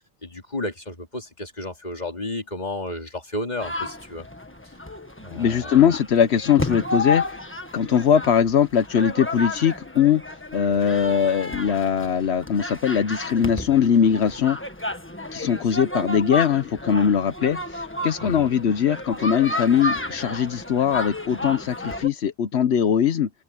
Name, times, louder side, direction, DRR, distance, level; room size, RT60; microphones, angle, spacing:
voice 1, 0.2-4.2 5.2-5.8 18.2-18.5, left 1 dB, 40° left, 3.0 m, -32 dB
sound 1, 3.6-22.1, left 2 dB, 10° left, 1.5 m, -32 dB
voice 2, 5.3-7.4 7.7-10.2 10.5-14.6 15.3-23.3, left 8 dB, 80° left, 1.1 m, -21 dB
omnidirectional pair, 1.1 m